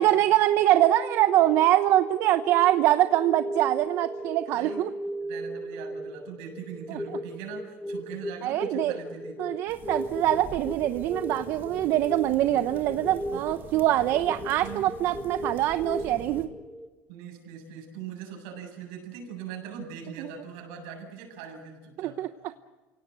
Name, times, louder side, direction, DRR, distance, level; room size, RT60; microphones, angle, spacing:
voice 1, 0.0-4.9 6.9-7.0 8.4-9.0 9.4-16.5 20.2-20.3 22.0-22.3, right 13 dB, 55° right, 10 dB, 1.0 m, -24 dB
sound 1, 0.6-16.9, right 1 dB, 5° left, 1.5 m, -37 dB
voice 2, 4.5-4.8 5.2-9.5 12.7-12.8 13.3-13.4 14.6-14.9 17.1-22.2, right 7 dB, 80° right, 3 dB, 7.6 m, -41 dB
sound 2, 9.7-16.5, right 6 dB, 40° right, 2.8 m, -45 dB
29.0 x 18.0 x 8.0 m, 1.2 s
cardioid pair, 135°, 5 cm